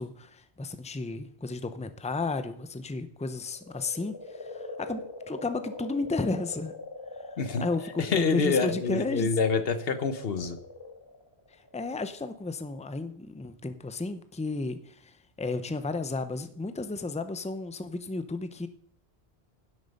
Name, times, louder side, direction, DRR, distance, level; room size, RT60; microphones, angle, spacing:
voice 1, 0.0-6.7 7.3-7.4 7.6-9.3 11.7-18.7, left 3 dB, 10° left, 10 dB, 0.6 m, -33 dB
sound 1, 3.4-12.1, left 2 dB, 25° left, 1.7 m, -43 dB
voice 2, 8.0-10.6, left 4 dB, 65° left, 11 dB, 1.2 m, -27 dB
11.0 x 7.9 x 5.4 m, 0.65 s
omnidirectional pair, 1.1 m